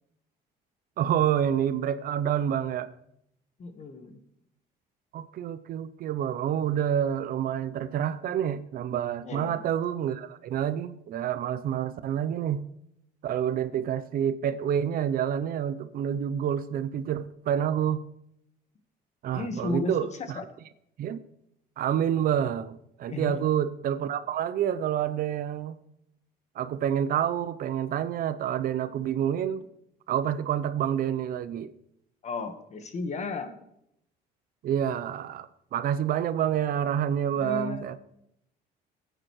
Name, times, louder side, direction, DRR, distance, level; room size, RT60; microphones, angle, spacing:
voice 1, 1.0-2.9 5.1-12.7 13.2-18.0 19.2-20.4 21.0-21.2 21.8-25.8 26.6-29.6 30.1-31.7 34.6-38.0, right 9 dB, 60° right, 14 dB, 0.6 m, -28 dB
voice 2, 3.6-4.2 9.2-9.6 19.3-19.9 20.3-20.4 23.1-23.5 32.2-33.6 37.3-38.0, left 3 dB, 45° left, 8 dB, 1.3 m, -34 dB
15.5 x 8.9 x 3.1 m, 0.76 s
cardioid pair, 110°, 17 cm